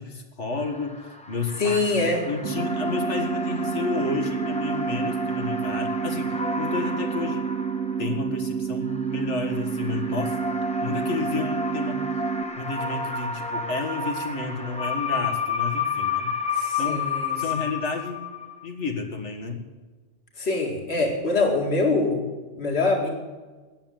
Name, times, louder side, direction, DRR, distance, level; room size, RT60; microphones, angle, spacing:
voice 1, 0.0-7.4 8.0-10.4 10.8-12.1 12.6-16.3 16.8-18.2 18.6-19.6, left 4 dB, 80° left, 3 dB, 2.1 m, -31 dB
sound 1, 0.6-8.4 8.8-18.7, left 4 dB, 5° left, 0.8 m, -31 dB
voice 2, 1.6-2.3 16.5-17.6 20.4-22.2 22.6-23.1, left 3 dB, 60° left, 1 dB, 2.4 m, -24 dB
sound 2, 2.4-12.4, right 7 dB, 85° right, 1.0 m, -29 dB
13.5 x 9.1 x 9.1 m, 1.3 s
omnidirectional pair, 1.2 m